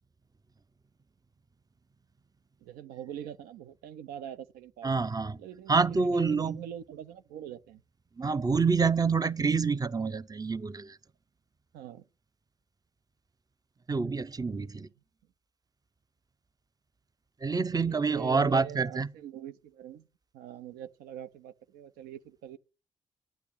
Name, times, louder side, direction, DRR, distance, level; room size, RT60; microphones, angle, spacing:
voice 1, 2.6-4.9 5.4-7.8 11.7-12.0 14.5-14.9 17.7-20.1 20.3-22.6, right 10 dB, 90° right, 0.6 m, -44 dB
voice 2, 4.8-5.4 5.7-6.6 8.2-11.0 13.9-14.9 17.4-19.1, right 4 dB, 25° right, 0.7 m, -27 dB
10.5 x 8.4 x 8.5 m
supercardioid pair, 50°, 15 cm